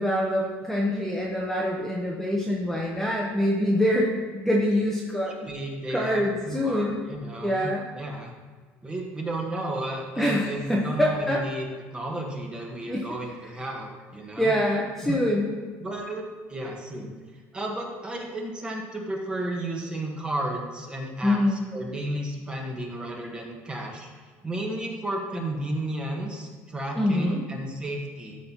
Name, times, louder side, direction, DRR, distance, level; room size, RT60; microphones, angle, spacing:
voice 1, 0.0-5.3 5.9-7.0 7.4-7.8 10.2-11.4 12.9-13.1 14.4-15.5 21.2-21.6 27.0-27.4, left 1 dB, 5° left, -3 dB, 1.1 m, -25 dB
voice 2, 5.2-8.3 8.8-11.7 11.9-14.5 15.0-15.2 15.8-17.1 17.5-24.1 24.4-28.4, right 1 dB, 15° right, 0 dB, 1.5 m, -33 dB
12.5 x 4.3 x 4.4 m, 1.5 s
cardioid pair, 125°, 6 cm